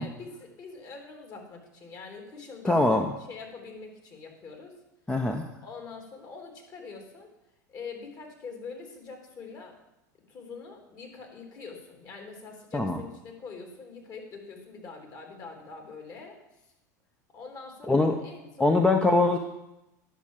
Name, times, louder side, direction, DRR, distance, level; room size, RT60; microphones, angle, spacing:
voice 1, 0.0-3.0 3.3-4.7 5.6-7.3 7.7-9.7 10.3-16.4 17.3-18.7, left 4 dB, 40° left, 2 dB, 3.2 m, -44 dB
voice 2, 2.6-3.1 5.1-5.4 12.7-13.0 17.9-18.1 18.6-19.4, left 2 dB, 10° left, 3 dB, 0.9 m, -22 dB
10.5 x 6.2 x 7.4 m, 0.92 s
hypercardioid pair, 95°, 10 cm